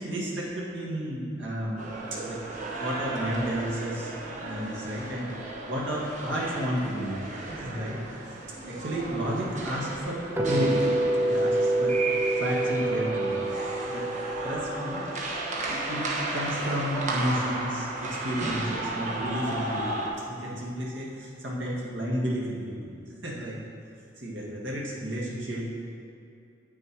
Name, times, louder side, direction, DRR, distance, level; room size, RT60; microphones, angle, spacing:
voice 1, 0.0-2.4 2.8-4.1 4.4-5.3 5.7-7.2 7.6-8.0 8.7-10.2 10.5-10.9 11.2-12.0 12.4-13.5 13.9-14.1 14.4-15.0 15.6-20.0 20.3-23.0 23.2-23.6 24.2-25.7, equal, 70° right, -4 dB, 1.9 m, -32 dB
sound 1, 1.8-20.1, right 2 dB, 40° right, 1.2 m, -34 dB
sound 2, 10.4-16.4, right 2 dB, 10° right, 0.7 m, -28 dB
8.3 x 6.5 x 4.6 m, 2.6 s
head